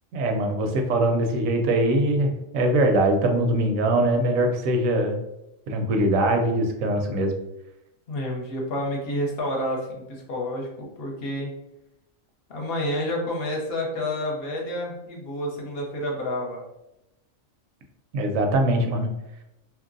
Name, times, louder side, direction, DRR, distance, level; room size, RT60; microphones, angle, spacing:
voice 1, 0.1-5.2 5.7-7.3 18.1-19.1, right 1 dB, 85° right, 4 dB, 1.0 m, -22 dB
voice 2, 8.1-11.5 12.5-16.6, left 1 dB, 55° left, -1 dB, 0.8 m, -29 dB
2.8 x 2.6 x 2.5 m, 0.88 s
omnidirectional pair, 1.4 m